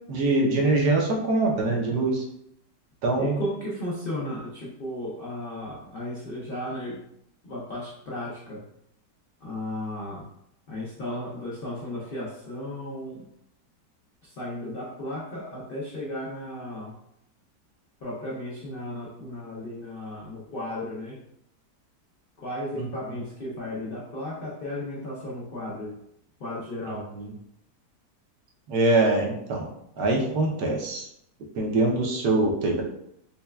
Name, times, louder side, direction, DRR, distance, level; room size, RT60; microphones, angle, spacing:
voice 1, 0.1-2.2 3.0-3.4 22.7-23.2 26.8-27.3 28.7-29.7 30.0-31.0 31.5-32.8, right 2 dB, 70° right, -1 dB, 1.3 m, -24 dB
voice 2, 3.2-7.0 7.4-8.6 9.4-10.2 10.7-13.2 14.4-16.9 18.0-21.2 22.4-25.9 26.4-27.0, left 1 dB, 70° left, -5 dB, 0.5 m, -34 dB
5.5 x 2.2 x 2.2 m, 0.75 s
omnidirectional pair, 1.9 m